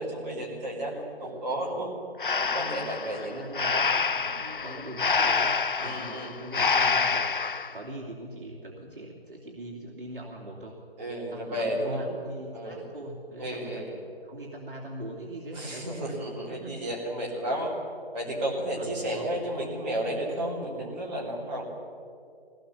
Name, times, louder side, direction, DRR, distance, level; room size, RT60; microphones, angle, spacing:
voice 1, 0.0-1.9 2.4-3.4 3.7-3.9 4.6-4.8 5.8-6.4 11.0-12.0 12.5-12.8 13.4-13.9 15.5-17.7 18.1-21.6, right 1 dB, 15° right, -5 dB, 2.7 m, -32 dB
voice 2, 1.2-1.7 3.0-5.5 5.8-10.8 11.3-14.0 14.2-16.1 16.5-16.8 18.8-19.4, right 1 dB, 55° right, -2 dB, 2.9 m, -41 dB
Breathing, 2.2-7.7, left 5 dB, 55° left, 0.8 m, -27 dB
21.0 x 17.5 x 7.1 m, 2.5 s
figure-of-eight pair, 165°, 31 cm